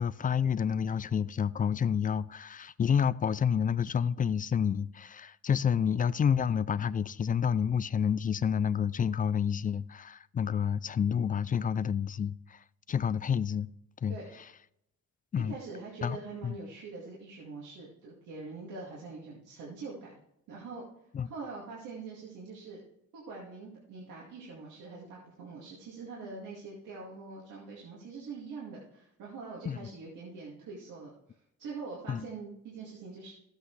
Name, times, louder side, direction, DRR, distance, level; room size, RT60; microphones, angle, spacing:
voice 1, 0.0-13.7 14.0-14.2 15.3-15.6 16.0-16.2 16.4-16.6 21.1-21.3 29.7-29.8 32.1-32.3, left 7 dB, 30° left, 0.3 m, -29 dB
voice 2, 14.1-14.5 15.5-20.2 20.5-20.8 21.2-22.8 23.1-31.1 31.6-33.3, right 4 dB, 85° right, 2.3 m, -44 dB
13.0 x 8.1 x 3.2 m
cardioid pair, 90°, 30 cm